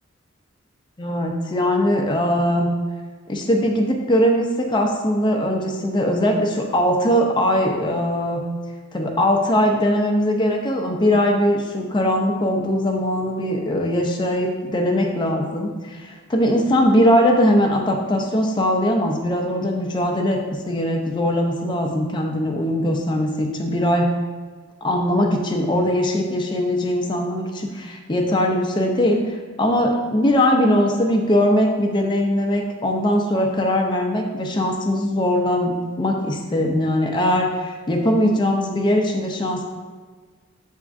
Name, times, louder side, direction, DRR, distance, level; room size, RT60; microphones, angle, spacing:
voice 1, 1.0-2.7 3.3-8.4 8.9-20.4 20.7-24.1 24.8-35.7 36.0-39.6, equal, 20° left, 1 dB, 0.4 m, -20 dB
6.1 x 3.6 x 2.5 m, 1.4 s
head